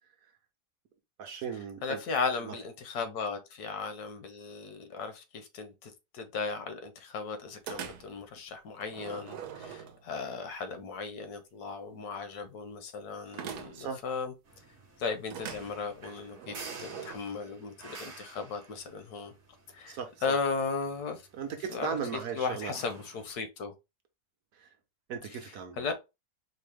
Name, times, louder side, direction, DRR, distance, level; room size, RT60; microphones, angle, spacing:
voice 1, 1.2-2.0 2.4-2.5 13.7-14.0 19.9-20.1 21.3-22.7 24.5-24.7 25.1-25.9, right 7 dB, 70° right, 1.0 m, -37 dB
voice 2, 1.8-14.3 15.0-19.3 19.7-21.2 21.7-22.0 22.4-23.7 25.8-25.9, left 5 dB, 75° left, 1.2 m, -36 dB
sound 1, 7.7-8.2 8.8-10.3 13.3-14.0 15.3-17.2, right 8 dB, 85° right, 1.2 m, -42 dB
sound 2, 14.4-23.3, right 3 dB, 45° right, 0.8 m, -51 dB
4.5 x 2.0 x 3.2 m
omnidirectional pair, 1.7 m